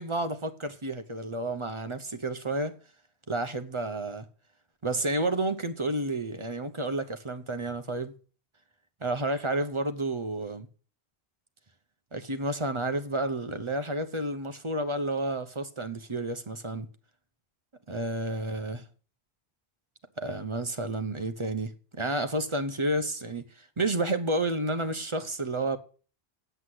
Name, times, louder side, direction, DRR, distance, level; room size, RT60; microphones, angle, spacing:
voice 1, 0.0-2.8 3.3-4.2 4.8-8.1 9.0-10.7 12.1-16.9 17.9-18.8 20.2-23.5 23.8-25.8, right 2 dB, 30° right, 0.9 m, -30 dB
8.0 x 7.9 x 7.8 m
omnidirectional pair, 1.1 m